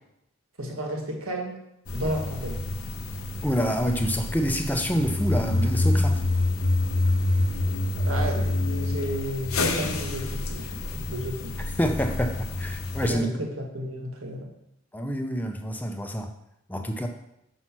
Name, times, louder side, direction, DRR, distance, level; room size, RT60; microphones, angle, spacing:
voice 1, 0.6-1.6 1.9-2.6 7.6-11.5 13.0-14.5, right 1 dB, 80° right, 1 dB, 1.6 m, -32 dB
sound 1, 1.9-13.1, left 2 dB, 90° left, 0.9 m, -27 dB
voice 2, 3.4-6.2 11.8-13.3 14.9-16.3 16.7-17.1, equal, 10° left, 4 dB, 0.6 m, -27 dB
6.1 x 5.5 x 6.0 m, 0.82 s
head